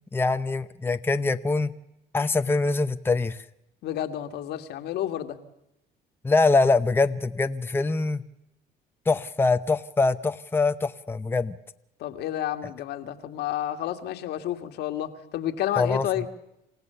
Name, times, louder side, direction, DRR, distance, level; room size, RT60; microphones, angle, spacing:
voice 1, 0.1-1.7 2.1-3.4 6.2-8.2 9.1-11.6 15.8-16.0, left 3 dB, 15° left, 9 dB, 0.8 m, -23 dB
voice 2, 3.8-5.4 12.0-16.3, left 12 dB, 75° left, 7 dB, 1.9 m, -30 dB
28.0 x 16.0 x 6.9 m, 0.86 s
cardioid pair, 110°, 17 cm